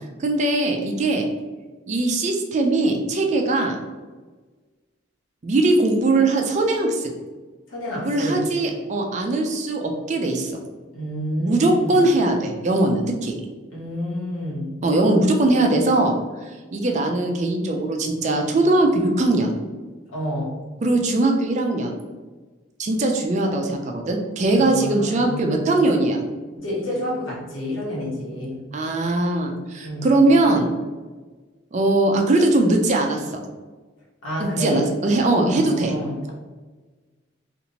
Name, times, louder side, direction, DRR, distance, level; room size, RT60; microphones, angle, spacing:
voice 1, 0.2-1.3 1.9-3.8 5.4-7.1 8.0-10.5 11.4-13.4 14.8-16.1 16.7-19.5 20.8-21.9 22.8-26.2 28.7-30.7 31.7-33.4 34.4-35.9, right 2 dB, 35° right, 3 dB, 0.4 m, -20 dB
voice 2, 7.7-8.4 10.9-12.0 13.7-14.7 20.1-20.6 24.6-25.6 26.5-28.6 29.8-30.1 34.2-34.8 35.3-36.3, equal, 85° left, -5 dB, 1.1 m, -29 dB
2.8 x 2.5 x 2.8 m, 1.3 s
head